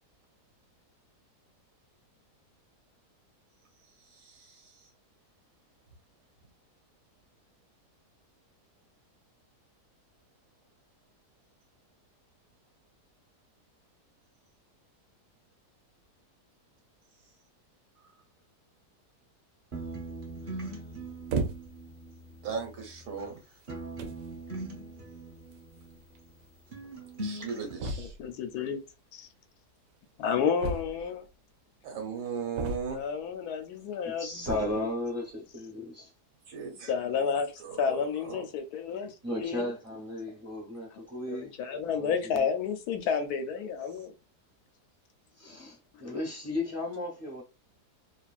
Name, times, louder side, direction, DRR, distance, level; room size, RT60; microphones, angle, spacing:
voice 1, 4.0-4.9 20.5-20.6 22.4-23.4 27.2-28.1 31.8-33.0 36.5-36.9 37.6-38.4, right 6 dB, 65° right, 1.3 m, -38 dB
sound 1, 19.7-23.4 23.7-26.5 26.7-27.7, right 1 dB, 40° right, 0.8 m, -41 dB
sound 2, 21.3-21.9 22.7-22.8 23.6-23.7 24.0-24.3 25.5-25.6 25.8-25.9 26.1-26.2 27.8-28.3 30.6-31.3 32.5-33.2 34.4-34.8, right 2 dB, 90° right, 1.2 m, -34 dB
voice 2, 28.0-28.8 29.1-29.3 30.2-31.2 32.9-34.8 36.9-39.7 41.3-44.1, left 6 dB, 75° left, 1.1 m, -31 dB
voice 3, 34.0-36.1 39.2-41.5 41.8-42.5 45.4-47.4, left 1 dB, 20° right, 0.5 m, -35 dB
2.9 x 2.5 x 2.3 m
omnidirectional pair, 1.7 m